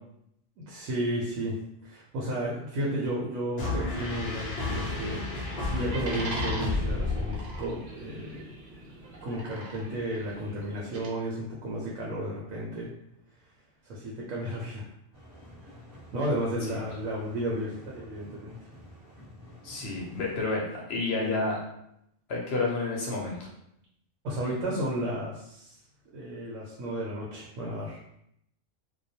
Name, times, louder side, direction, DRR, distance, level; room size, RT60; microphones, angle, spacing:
voice 1, 0.7-1.6 1.8-5.2 5.7-8.5 9.2-12.9 13.8-14.9 16.1-18.5 24.2-25.8 26.1-28.0, right 1 dB, 85° right, -4 dB, 1.0 m, -33 dB
sound 1, 3.6-7.9, left 3 dB, 90° left, 0.3 m, -32 dB
sound 2, 4.8-11.1, right 2 dB, 60° right, 0.5 m, -42 dB
sound 3, 15.1-20.4, equal, 20° right, 0.6 m, -49 dB
voice 2, 19.6-21.6 22.3-23.5, left 3 dB, 65° left, -2 dB, 0.7 m, -30 dB
2.3 x 2.2 x 2.6 m, 0.77 s
omnidirectional pair, 1.4 m